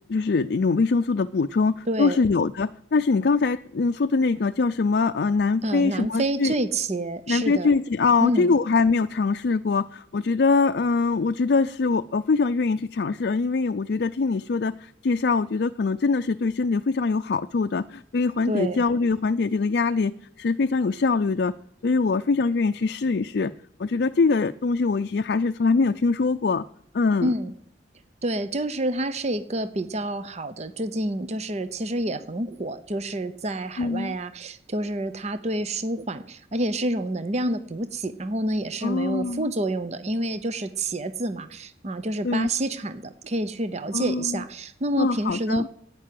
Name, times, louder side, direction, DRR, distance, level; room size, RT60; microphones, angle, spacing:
voice 1, 0.1-6.5 7.3-21.5 21.8-23.5 23.8-26.6 26.9-27.3 33.8-34.2 38.8-39.5 42.2-42.5 43.9-44.4 45.0-45.7, left 4 dB, 60° left, 9 dB, 0.4 m, -23 dB
voice 2, 1.9-2.2 5.6-7.7 8.2-8.5 18.5-18.8 27.2-27.5 28.2-45.7, right 1 dB, 40° right, 12 dB, 0.8 m, -28 dB
11.0 x 9.6 x 7.6 m, 0.73 s
head